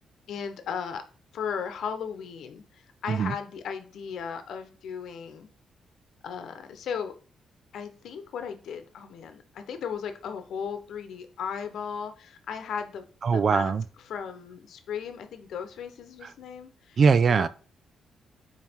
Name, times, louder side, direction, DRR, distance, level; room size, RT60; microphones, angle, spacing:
voice 1, 0.3-1.0 1.3-5.5 6.2-7.1 7.7-13.7 14.1-17.0 17.3-17.5, left 7 dB, 65° left, 1.0 m, -36 dB
voice 2, 13.2-13.8 17.0-17.5, right 5 dB, 40° right, 0.3 m, -21 dB
5.3 x 4.5 x 4.5 m
cardioid pair, 160°, 0 cm